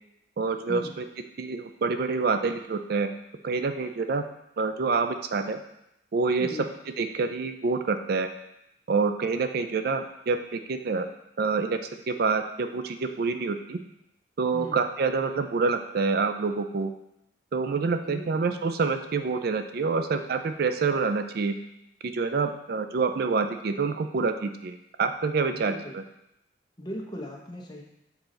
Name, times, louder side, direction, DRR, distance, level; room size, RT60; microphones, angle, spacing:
voice 1, 0.4-0.8 1.4-3.1 3.4-4.2 4.6-5.6 6.1-6.5 7.0-8.3 8.9-11.1 11.4-11.8 12.1-13.8 14.4-16.9 17.5-21.6 22.0-26.0, right 4 dB, 55° right, 8 dB, 0.4 m, -27 dB
voice 2, 18.0-18.4 25.5-25.9 26.8-27.8, left 1 dB, 25° left, -1 dB, 1.0 m, -38 dB
6.9 x 4.2 x 3.9 m, 0.83 s
head